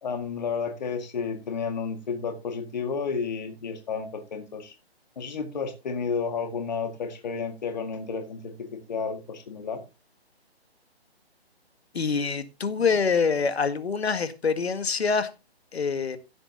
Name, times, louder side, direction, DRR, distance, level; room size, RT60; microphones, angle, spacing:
voice 1, 0.0-4.7 5.2-9.8, left 5 dB, 40° left, 1.9 m, -31 dB
voice 2, 11.9-15.3 15.7-16.2, left 5 dB, 75° left, 1.8 m, -25 dB
16.0 x 7.8 x 2.8 m
hypercardioid pair, 165°, 32 cm